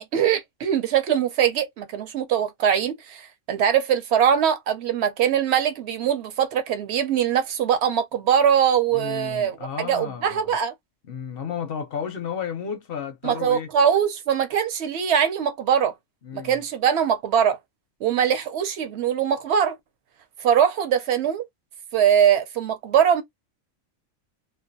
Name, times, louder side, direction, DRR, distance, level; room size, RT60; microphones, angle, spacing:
voice 1, 0.0-10.7 13.2-15.9 16.3-17.6 18.0-19.8 20.4-21.5 21.9-23.2, right 8 dB, 65° right, 0.8 m, -22 dB
voice 2, 8.9-10.6 11.1-13.7 16.2-16.6, left 7 dB, 60° left, 0.6 m, -33 dB
2.4 x 2.2 x 2.5 m
omnidirectional pair, 1.4 m